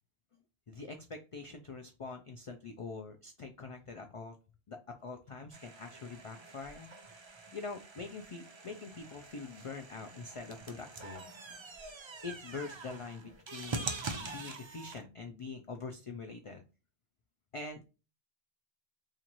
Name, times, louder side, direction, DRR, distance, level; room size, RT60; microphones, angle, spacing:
voice 1, 0.7-4.4 4.7-6.9 7.5-11.2 12.2-13.9 14.2-16.6 17.5-17.8, left 4 dB, 60° left, 5 dB, 0.3 m, -44 dB
sound 1, 5.5-15.0, right 3 dB, 40° right, 0.4 m, -44 dB
3.0 x 2.5 x 3.9 m, 0.31 s
omnidirectional pair, 1.1 m